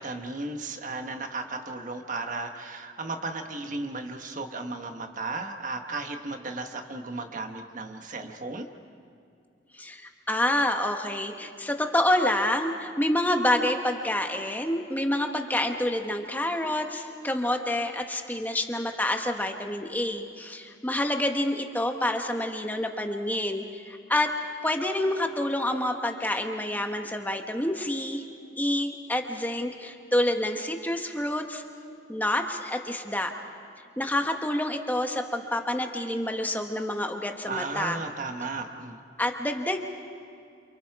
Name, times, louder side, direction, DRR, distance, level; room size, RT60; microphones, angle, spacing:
voice 1, 0.0-8.7 37.5-39.0, right 3 dB, 45° right, 5 dB, 1.3 m, -35 dB
voice 2, 9.7-24.4 24.6-28.2 28.6-31.6 32.1-33.3 34.0-38.0 39.2-39.8, left 1 dB, 10° left, 4 dB, 1.3 m, -28 dB
28.5 x 28.0 x 4.8 m, 2.3 s
head